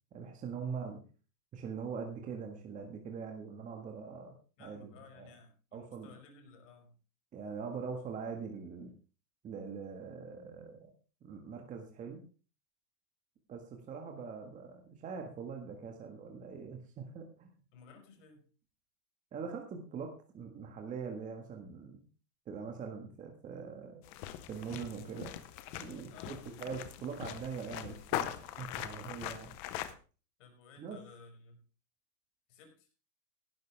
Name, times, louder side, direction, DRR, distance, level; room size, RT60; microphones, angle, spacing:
voice 1, 0.1-1.0 1.5-5.3 5.7-6.1 7.3-8.9 9.4-10.9 11.2-12.2 13.5-17.5 19.3-22.0 22.4-24.0 24.5-25.4 25.8-29.5 30.8-31.0, right 6 dB, 15° right, 2 dB, 1.6 m, -43 dB
voice 2, 4.6-7.0 17.7-18.5 26.1-26.6 30.4-31.6 32.5-32.9, left 5 dB, 50° left, 5 dB, 5.4 m, -56 dB
sound 1, 24.0-29.9, left 12 dB, 15° left, 0.5 m, -41 dB
15.5 x 12.5 x 3.4 m, 0.35 s
supercardioid pair, 160°, 48 cm